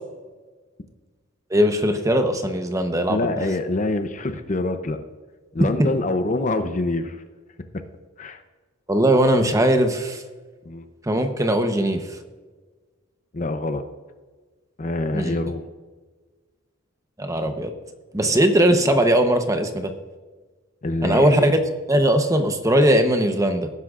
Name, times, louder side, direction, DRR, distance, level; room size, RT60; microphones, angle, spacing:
voice 1, 1.5-3.3 5.8-5.9 8.9-10.2 11.0-12.2 15.1-15.4 17.2-17.7 18.1-19.9 21.0-21.6 21.9-23.7, right 1 dB, 15° right, 6 dB, 0.9 m, -19 dB
voice 2, 3.1-5.0 5.5-7.2 8.2-8.4 10.6-10.8 13.3-13.8 14.8-15.7 20.8-21.5, left 2 dB, 40° left, 8 dB, 0.7 m, -25 dB
19.0 x 10.0 x 2.5 m, 1.4 s
head